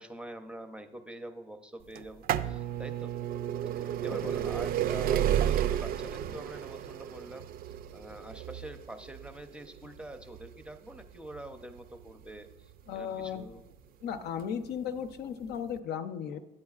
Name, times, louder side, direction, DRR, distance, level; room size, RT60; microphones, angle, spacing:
voice 1, 0.0-3.2 3.7-13.6, right 1 dB, 5° right, 7 dB, 0.6 m, -45 dB
sound 1, 2.0-13.6 14.4-14.5 15.5-15.6 15.8-15.9, right 11 dB, 60° right, 0.4 m, -32 dB
voice 2, 12.9-13.5 14.0-16.4, left 8 dB, 75° left, 10 dB, 0.6 m, -36 dB
11.5 x 8.6 x 2.4 m, 0.93 s
cardioid pair, 110°, 17 cm